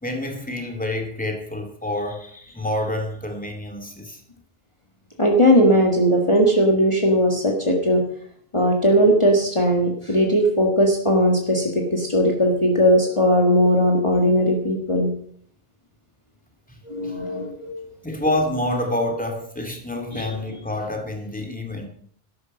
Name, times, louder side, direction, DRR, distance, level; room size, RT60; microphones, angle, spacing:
voice 1, 0.0-4.2 17.0-17.2 18.0-21.9, left 1 dB, 10° left, 3 dB, 2.2 m, -27 dB
voice 2, 5.2-8.0 8.5-15.1 16.9-17.8 20.1-20.3, equal, 30° left, 1 dB, 1.8 m, -18 dB
13.0 x 12.0 x 5.3 m, 0.62 s
omnidirectional pair, 1.0 m